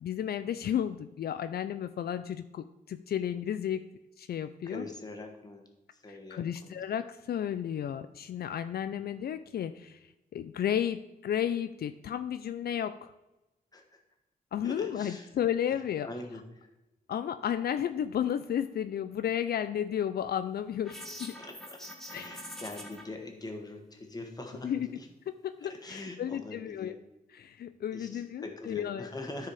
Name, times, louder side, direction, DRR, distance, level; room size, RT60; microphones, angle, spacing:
voice 1, 0.0-3.9 4.2-4.8 6.1-10.0 10.3-13.1 14.5-16.1 17.1-21.3 22.1-22.3 24.6-24.9 25.4-26.9 27.3-29.1, left 9 dB, 75° left, 11 dB, 0.4 m, -33 dB
voice 2, 4.6-5.6 5.9-6.8 13.7-14.0 14.6-15.3 16.0-16.7 21.4-21.8 22.1-25.1 25.6-27.0 27.9-29.5, left 2 dB, 25° left, 3 dB, 1.5 m, -43 dB
sound 1, 20.8-23.0, equal, ahead, 1.5 m, -44 dB
13.0 x 4.8 x 4.9 m, 0.97 s
wide cardioid pair, 125°, 16 cm